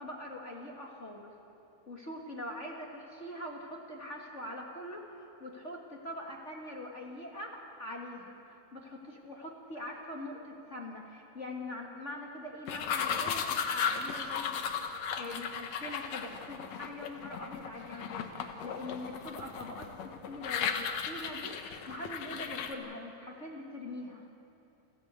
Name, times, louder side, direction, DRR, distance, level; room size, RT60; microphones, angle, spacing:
voice 1, 0.0-1.3 1.9-14.5 14.8-19.9 20.3-24.3, left 1 dB, 35° left, 0 dB, 1.2 m, -43 dB
sound 1, 12.7-22.7, left 7 dB, 65° left, 2.0 m, -36 dB
29.0 x 13.0 x 8.2 m, 2.8 s
omnidirectional pair, 3.9 m